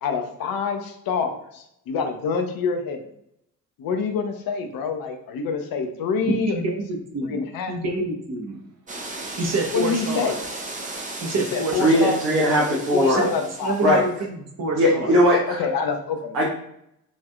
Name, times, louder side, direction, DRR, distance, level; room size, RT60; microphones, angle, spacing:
voice 1, 0.0-3.1 3.8-6.6 7.3-7.7 9.7-10.4 11.5-12.2 12.6-13.8 15.0-15.2 15.6-16.4, left 5 dB, 45° left, 5 dB, 0.7 m, -26 dB
voice 2, 6.2-8.6 9.4-10.4 11.2-12.0 13.1-13.3 13.6-15.1, right 2 dB, 30° right, 1 dB, 0.9 m, -27 dB
sound 1, 8.9-14.1, right 2 dB, 15° right, 0.6 m, -36 dB
voice 3, 11.8-13.2 13.8-14.0 14.7-15.6 16.3-16.4, equal, 75° right, -4 dB, 0.9 m, -19 dB
5.1 x 2.6 x 2.4 m, 0.74 s
figure-of-eight pair, 45°, 49 cm